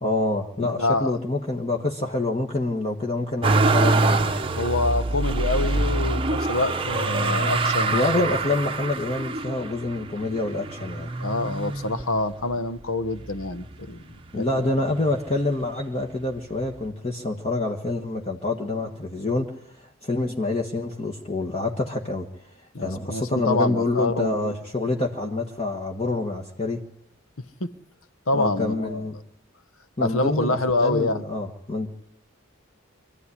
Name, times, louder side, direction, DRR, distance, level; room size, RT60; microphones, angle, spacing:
voice 1, 0.0-4.4 7.9-11.1 14.3-22.5 22.8-26.8 28.3-29.2 30.0-31.9, left 2 dB, 30° left, 1 dB, 1.4 m, -27 dB
voice 2, 0.6-1.2 4.6-8.0 11.2-14.5 22.7-24.6 27.6-27.7 28.3-29.1 30.0-31.2, left 2 dB, 75° left, 12 dB, 1.2 m, -26 dB
Motor vehicle (road), 3.4-12.6 13.2-14.0 14.2-15.4 16.4-16.5, right 3 dB, 25° right, 0.8 m, -25 dB
25.0 x 14.5 x 9.9 m, 0.73 s
head